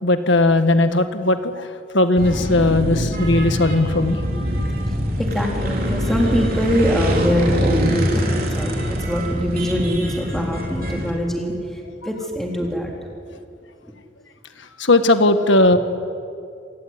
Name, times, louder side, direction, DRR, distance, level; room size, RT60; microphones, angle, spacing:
voice 1, 0.0-4.2 14.8-15.8, left 2 dB, 75° left, 9 dB, 1.8 m, -17 dB
sound 1, 2.2-11.1, equal, 50° right, 4.1 m, -23 dB
voice 2, 5.2-12.9, equal, ahead, -1 dB, 3.8 m, -23 dB
27.5 x 18.5 x 9.7 m, 2.4 s
head